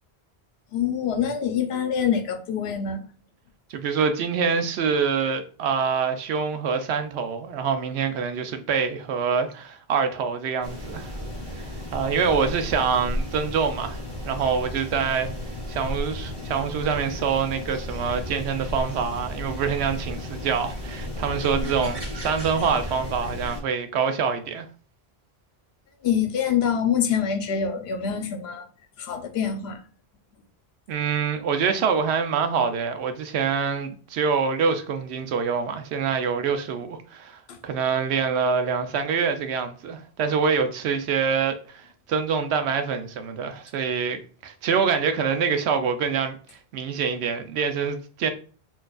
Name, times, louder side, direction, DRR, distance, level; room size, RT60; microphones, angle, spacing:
voice 1, 0.7-3.0 12.4-12.5 21.6-21.7 26.0-28.7 29.0-29.8 37.5-37.6, left 8 dB, 75° left, 0.8 m, -25 dB
voice 2, 3.7-11.1 11.5-11.7 11.9-15.3 15.7-24.7 30.9-48.3, right 6 dB, 80° right, 0.8 m, -25 dB
sound 1, 10.6-23.6, equal, 25° right, 1.0 m, -34 dB
4.4 x 2.4 x 2.3 m
omnidirectional pair, 1.1 m